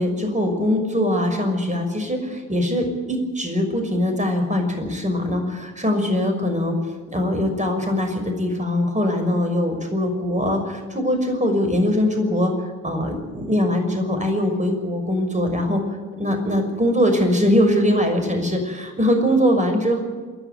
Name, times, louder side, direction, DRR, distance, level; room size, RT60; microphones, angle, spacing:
voice 1, 0.0-6.7 7.1-12.5 12.8-15.8 16.2-20.0, left 1 dB, 20° right, 5 dB, 6.1 m, -22 dB
28.0 x 11.0 x 9.3 m, 1.4 s
figure-of-eight pair, 45°, 37 cm